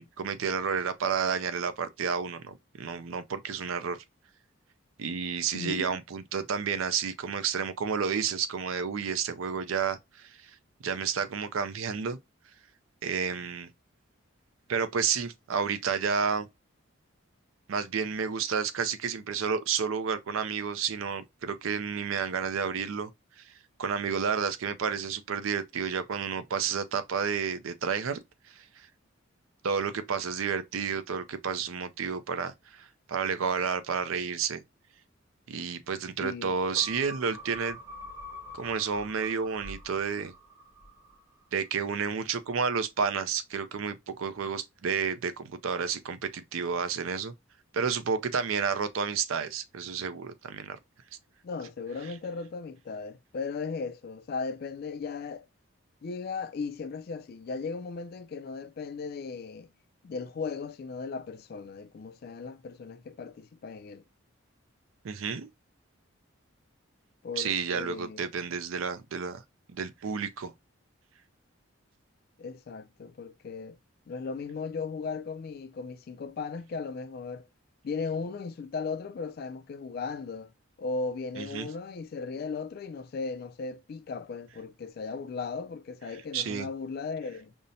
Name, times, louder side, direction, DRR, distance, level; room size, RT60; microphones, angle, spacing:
voice 1, 0.0-4.0 5.0-10.4 10.8-12.2 13.0-13.7 14.7-16.5 17.7-23.1 23.8-28.2 29.6-34.6 35.5-37.8 38.5-40.3 41.5-47.3 47.7-50.8 65.0-65.5 67.4-69.4 69.7-70.5 81.4-81.7 86.3-86.7, right 6 dB, 80° right, 0.5 m, -31 dB
voice 2, 5.5-5.9 36.2-36.6 51.4-55.4 56.0-59.7 60.0-64.0 67.2-68.3 72.4-73.8 74.1-77.5 77.8-80.5 80.8-87.5, left 4 dB, 45° left, 0.3 m, -37 dB
sound 1, 36.7-41.4 41.8-41.9, left 1 dB, 15° right, 0.7 m, -45 dB
5.3 x 2.1 x 2.6 m
head